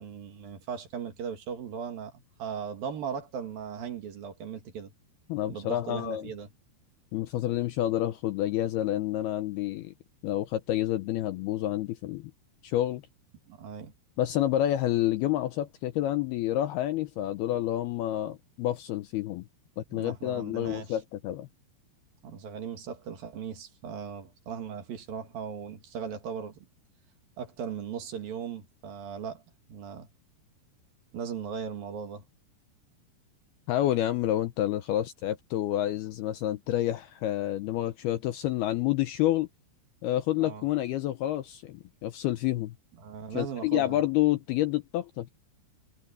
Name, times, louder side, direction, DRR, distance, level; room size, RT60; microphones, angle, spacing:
voice 1, 0.0-4.9 5.5-6.5 13.5-13.9 19.9-21.0 22.2-26.7 27.4-29.4 29.7-30.1 31.1-32.2 40.4-40.7 43.0-44.0, right 7 dB, 60° right, 3.5 m, -38 dB
voice 2, 5.3-6.3 7.1-9.9 10.2-12.3 12.6-13.0 14.2-19.5 19.8-21.5 33.7-39.5 40.0-42.7 43.3-45.3, left 13 dB, 75° left, 2.4 m, -29 dB
omnidirectional pair, 5.3 m